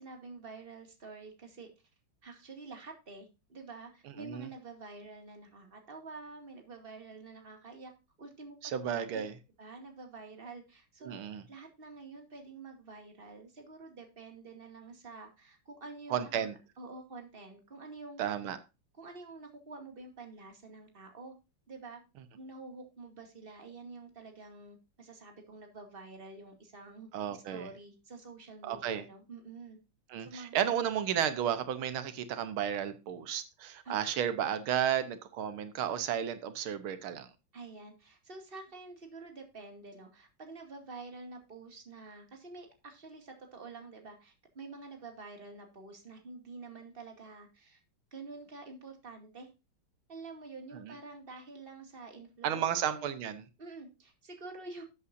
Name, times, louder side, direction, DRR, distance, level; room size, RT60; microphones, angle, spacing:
voice 1, 0.0-1.7 2.2-7.9 8.2-9.2 9.6-16.4 16.8-18.2 19.0-21.3 21.7-22.0 22.4-27.1 27.5-29.8 30.2-30.6 33.8-34.0 37.5-47.8 48.1-49.5 50.1-53.1 53.6-54.8, right 3 dB, 25° right, 2.3 m, -48 dB
voice 2, 8.6-9.3 11.0-11.4 16.1-16.6 18.2-18.6 27.1-27.7 28.6-29.0 30.1-37.3 50.7-50.9 52.4-53.4, right 9 dB, 90° right, 1.8 m, -33 dB
13.0 x 8.3 x 2.6 m
omnidirectional pair, 2.2 m